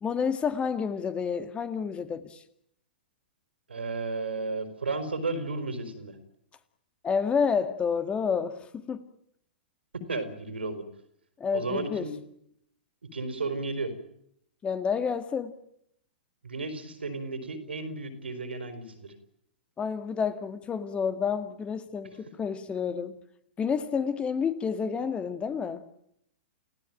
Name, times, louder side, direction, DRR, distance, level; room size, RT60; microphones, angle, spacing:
voice 1, 0.0-2.4 7.0-9.1 11.4-12.1 14.6-15.5 19.8-23.2 23.6-25.8, left 6 dB, 20° left, 2.0 m, -29 dB
voice 2, 3.7-6.2 10.1-10.8 11.5-12.1 13.1-13.9 16.4-19.1, right 3 dB, 85° right, 4.6 m, -33 dB
30.0 x 17.0 x 9.1 m
hypercardioid pair, 110°, 6 cm